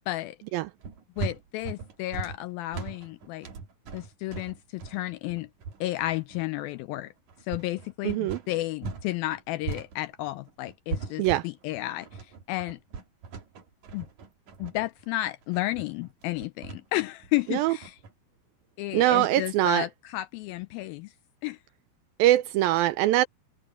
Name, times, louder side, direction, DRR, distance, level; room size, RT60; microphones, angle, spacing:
sound 1, 0.8-9.1 9.3-18.1, right 5 dB, 50° right, 3.4 m, -39 dB
voice 1, 1.2-3.5 3.9-5.5 5.8-7.1 7.4-12.8 13.9-14.1 14.6-18.0 18.8-21.1 21.4-21.6, left 17 dB, 85° left, 2.1 m, -32 dB
voice 2, 8.0-8.4 11.2-11.4 17.5-17.8 18.9-19.9 22.2-23.3, right 15 dB, 80° right, 2.2 m, -23 dB
open air
omnidirectional pair, 4.6 m